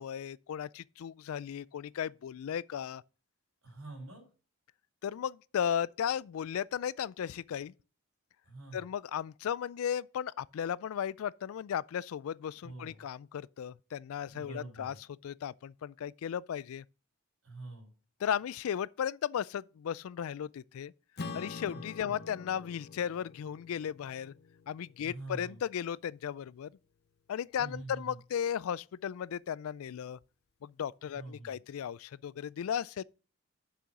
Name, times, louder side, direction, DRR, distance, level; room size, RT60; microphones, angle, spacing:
voice 1, 0.0-3.0 5.0-7.7 8.7-14.9 15.2-16.8 18.2-20.9 21.3-24.3 24.7-26.7 27.3-30.2 30.6-33.0, left 8 dB, 70° left, 0.3 m, -35 dB
voice 2, 3.6-4.2 8.4-8.8 12.6-13.1 14.3-15.0 17.4-17.9 21.7-22.3 25.1-25.6 27.6-28.2 31.1-31.6, right 2 dB, 75° right, 4.5 m, -46 dB
Acoustic guitar / Strum, 21.2-25.9, left 4 dB, 45° left, 0.8 m, -46 dB
7.0 x 6.2 x 5.9 m
head